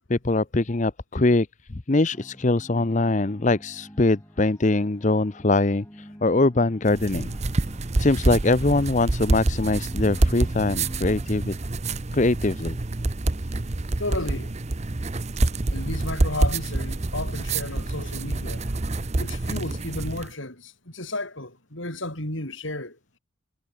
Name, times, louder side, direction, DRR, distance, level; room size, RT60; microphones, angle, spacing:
voice 1, 0.1-7.3 8.0-11.5 12.1-12.8, left 2 dB, 35° left, 0.7 m, -22 dB
sound 1, 2.1-11.3, equal, 15° left, 5.8 m, -48 dB
sound 2, 6.9-20.3, right 2 dB, 35° right, 0.8 m, -27 dB
voice 2, 14.0-14.5 15.7-18.6 19.2-22.9, left 2 dB, 65° left, 7.8 m, -33 dB
head